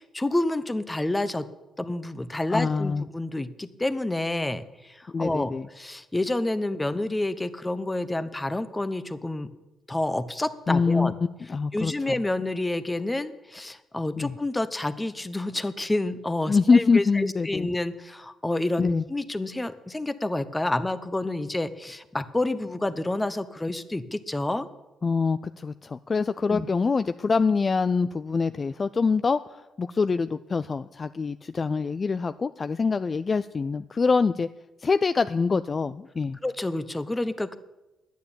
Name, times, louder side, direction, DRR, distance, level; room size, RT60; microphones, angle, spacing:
voice 1, 0.0-1.4 1.8-9.5 9.9-11.1 11.7-24.7 26.5-26.7 36.4-37.6, left 2 dB, 15° left, 13 dB, 0.9 m, -29 dB
voice 2, 2.5-3.0 5.1-5.7 10.7-11.1 11.5-12.2 14.2-14.4 16.5-17.7 18.8-19.0 25.0-34.5 34.8-36.4, left 4 dB, 35° left, 12 dB, 0.4 m, -25 dB
10.5 x 9.3 x 8.6 m, 1.0 s
cardioid pair, 90°, 0 cm